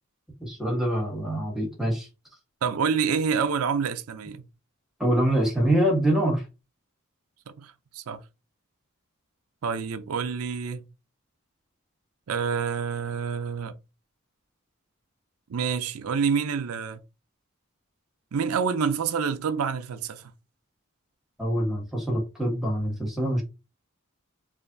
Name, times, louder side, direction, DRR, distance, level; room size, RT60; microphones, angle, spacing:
voice 1, 0.4-2.1 5.0-6.4 21.4-23.4, right 1 dB, ahead, 1.3 m, -25 dB
voice 2, 2.6-4.4 7.5-8.2 9.6-10.9 12.3-13.7 15.5-17.0 18.3-20.3, right 6 dB, 90° right, 0.5 m, -27 dB
4.8 x 2.5 x 2.6 m
head